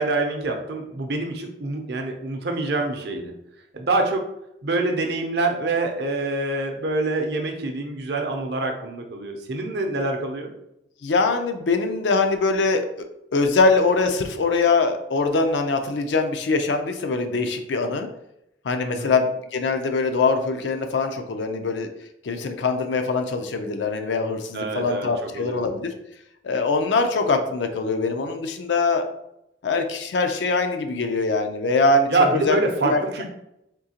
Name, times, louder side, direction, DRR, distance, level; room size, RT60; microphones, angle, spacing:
voice 1, 0.0-3.3 3.7-4.3 4.6-10.5 18.8-19.1 24.5-25.1 25.3-25.6 32.1-33.2, right 2 dB, 60° right, 3 dB, 0.6 m, -25 dB
voice 2, 11.0-13.1 13.3-18.1 18.6-21.9 22.2-25.9 26.4-29.1 29.6-33.0, left 3 dB, 75° left, 6 dB, 0.4 m, -23 dB
3.7 x 2.8 x 2.8 m, 0.83 s
head